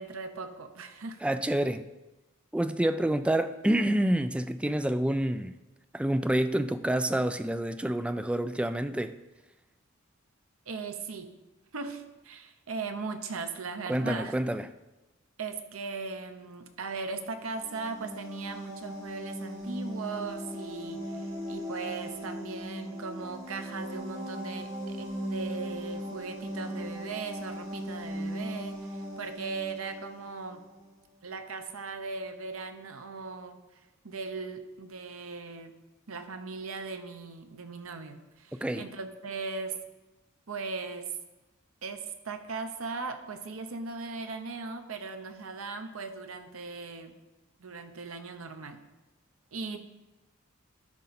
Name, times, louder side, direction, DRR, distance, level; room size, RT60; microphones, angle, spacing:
voice 1, 0.0-1.3 10.7-11.3 11.7-14.4 15.4-30.6 31.2-33.6 34.0-35.7 36.1-39.7 40.5-41.1 41.8-47.1 47.6-48.8 49.5-49.8, right 4 dB, 80° right, 7 dB, 0.9 m, -38 dB
voice 2, 1.2-1.9 2.5-5.5 5.9-9.1 13.9-14.7 38.6-38.8, right 1 dB, 5° right, 10 dB, 0.3 m, -28 dB
sound 1, 17.3-30.9, equal, 30° right, 2.7 m, -38 dB
12.0 x 5.2 x 4.1 m, 1.0 s
head